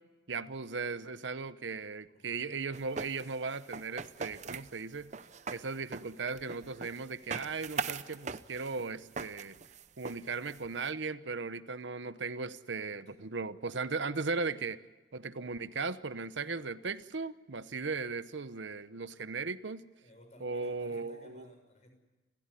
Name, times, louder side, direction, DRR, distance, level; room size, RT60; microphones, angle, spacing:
voice 1, 0.3-5.1 5.5-9.6 10.0-14.8 15.1-19.8 20.4-21.5, right 4 dB, 80° right, 13 dB, 0.9 m, -37 dB
voice 2, 2.0-2.4 12.9-13.2 20.0-21.9, left 1 dB, 40° left, 4 dB, 6.5 m, -57 dB
sound 1, 2.7-10.9, right 5 dB, 40° right, 0.7 m, -41 dB
29.0 x 15.5 x 9.9 m, 1.2 s
head